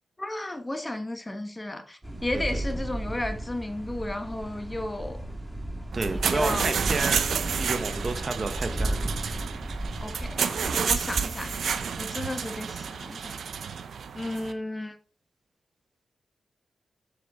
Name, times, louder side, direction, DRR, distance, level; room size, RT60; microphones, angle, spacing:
voice 1, 0.2-5.2 6.1-6.7 10.0-11.6 12.0-13.4 14.1-15.0, left 1 dB, 20° left, 1.3 m, -34 dB
sound 1, 2.0-12.0, right 1 dB, 15° right, 2.1 m, -34 dB
voice 2, 5.9-9.9, right 3 dB, 40° right, 1.2 m, -32 dB
sound 2, 5.9-14.5, right 6 dB, 75° right, 0.7 m, -30 dB
7.0 x 6.9 x 3.7 m
cardioid pair, 60°, 0 cm